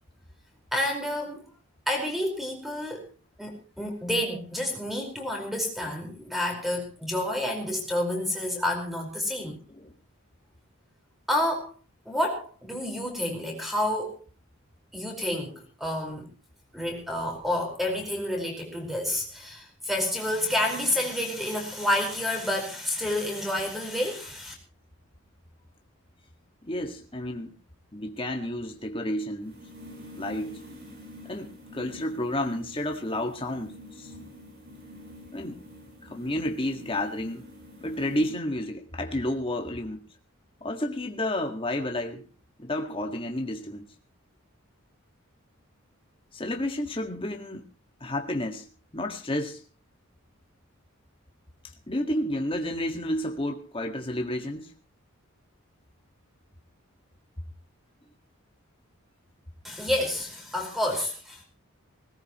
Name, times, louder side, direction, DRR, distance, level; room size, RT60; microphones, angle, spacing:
voice 1, 0.7-1.5 1.9-3.1 3.4-9.6 11.3-11.7 12.0-14.2 14.9-16.3 16.7-24.5 59.6-61.4, left 1 dB, ahead, 2 dB, 4.7 m, -29 dB
voice 2, 26.6-27.5 27.9-29.6 30.2-30.6 31.2-34.1 35.3-35.6 36.1-37.4 37.8-40.0 40.6-42.3 42.6-43.9 46.3-47.7 48.0-48.7 48.9-49.6 51.9-54.7, left 1 dB, 25° left, 3 dB, 1.8 m, -31 dB
sound 1, 28.7-38.3, left 1 dB, 50° right, 7.7 m, -47 dB
20.5 x 18.5 x 3.1 m, 0.33 s
head